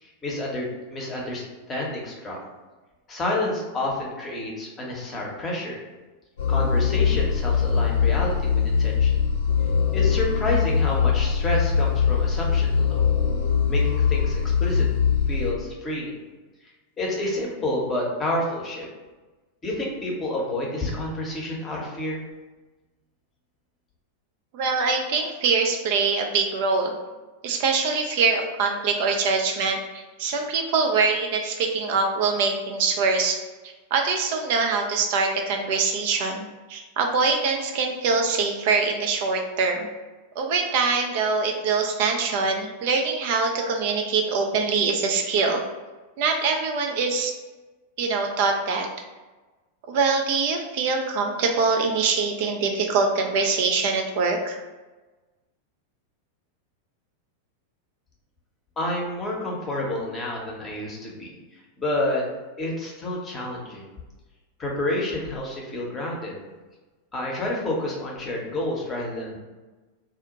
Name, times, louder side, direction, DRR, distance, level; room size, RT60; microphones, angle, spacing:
voice 1, 0.0-2.4 3.1-5.8 6.5-9.2 9.9-13.1 13.7-14.9 15.3-16.2 17.0-18.9 19.6-22.2 58.8-61.3 61.8-62.2 62.6-63.8 64.6-66.4 67.1-69.4, left 1 dB, 20° left, -2 dB, 0.8 m, -29 dB
sound 1, 6.4-15.5, left 6 dB, 60° left, 0.6 m, -22 dB
voice 2, 24.5-26.9 27.4-33.4 33.9-39.9 40.4-45.6 46.2-47.3 48.0-48.9 49.9-54.6, right 4 dB, 50° right, 3 dB, 0.3 m, -24 dB
2.3 x 2.1 x 3.8 m, 1.2 s
figure-of-eight pair, 90°, 0 cm